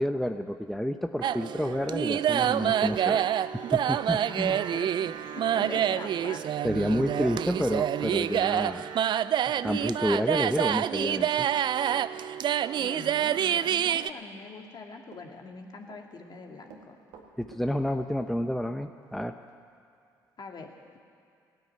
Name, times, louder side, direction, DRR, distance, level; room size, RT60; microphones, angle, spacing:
voice 1, 0.0-4.8 6.6-8.9 9.6-11.5 17.4-19.4, equal, ahead, 6 dB, 0.7 m, -30 dB
Run, 1.1-1.3 1.6-4.9 5.2-5.7 6.0-12.3 12.7-14.8 15.1-16.0 16.3-19.6, right 6 dB, 75° right, 1.9 m, -52 dB
sound 1, 1.2-14.1, right 10 dB, 50° right, 0.4 m, -27 dB
voice 2, 4.2-6.5 12.8-17.0 20.4-21.0, left 3 dB, 45° left, 2 dB, 2.1 m, -43 dB
16.5 x 9.3 x 9.4 m, 2.5 s
hypercardioid pair, 55°, 10 cm